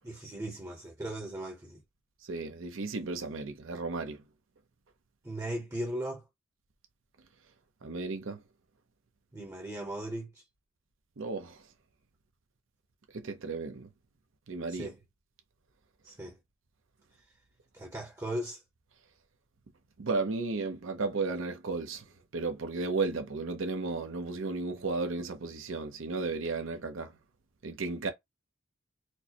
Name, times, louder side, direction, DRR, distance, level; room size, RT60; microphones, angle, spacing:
voice 1, 0.0-1.8 5.2-6.2 9.3-10.4 14.7-15.0 16.0-16.4 17.7-18.6, right 1 dB, 15° right, 0.7 m, -38 dB
voice 2, 2.3-4.2 7.8-8.4 11.2-11.6 13.1-13.9 14.5-14.9 20.0-22.0 22.3-27.1 27.6-28.1, right 3 dB, 85° right, 0.7 m, -34 dB
4.4 x 2.1 x 2.8 m
head